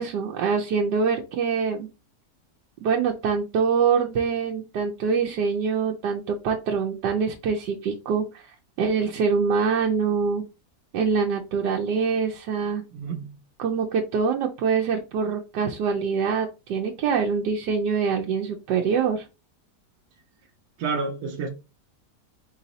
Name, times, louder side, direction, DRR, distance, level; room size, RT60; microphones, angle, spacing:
voice 1, 0.0-1.9 2.8-8.4 8.8-10.5 10.9-12.8 13.6-19.2, right 5 dB, 85° right, 1.3 m, -24 dB
voice 2, 12.9-13.4 20.8-21.5, right 4 dB, 70° right, 1.1 m, -29 dB
4.7 x 2.7 x 4.0 m
omnidirectional pair, 1.8 m